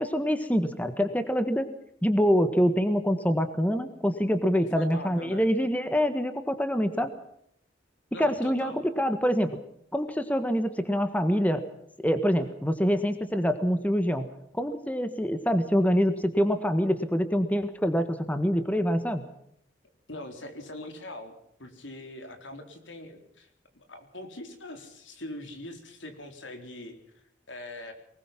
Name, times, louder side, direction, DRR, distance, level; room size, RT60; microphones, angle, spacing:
voice 1, 0.0-1.7 2.0-7.1 8.2-9.6 9.9-11.6 12.0-14.3 14.5-19.2, equal, 10° left, 9 dB, 1.6 m, -25 dB
voice 2, 4.5-5.5 8.1-8.8 20.1-21.3 21.6-23.5 23.7-26.9 27.5-27.9, left 1 dB, 85° left, 6 dB, 4.1 m, -42 dB
24.0 x 20.0 x 5.9 m, 0.73 s
head